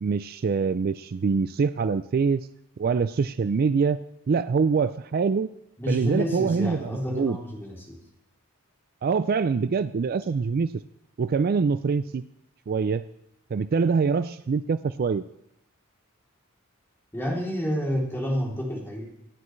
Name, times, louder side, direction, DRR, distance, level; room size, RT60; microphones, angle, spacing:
voice 1, 0.0-2.4 2.8-4.0 4.3-5.5 5.9-7.4 9.0-10.7 11.2-12.2 12.7-13.1 13.5-15.2, right 5 dB, 45° right, 13 dB, 0.4 m, -24 dB
voice 2, 5.8-8.0 17.1-19.0, equal, 10° left, -3 dB, 3.1 m, -29 dB
24.5 x 9.7 x 3.2 m, 0.80 s
head